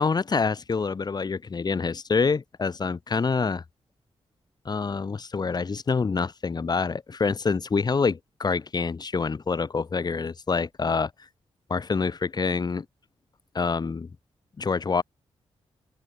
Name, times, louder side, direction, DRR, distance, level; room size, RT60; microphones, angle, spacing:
voice 1, 0.0-3.6 4.7-11.1 11.7-12.9 13.6-14.1 14.6-15.0, left 5 dB, 40° left, 6.9 m, -26 dB
open air
wide cardioid pair, 115°, 11 cm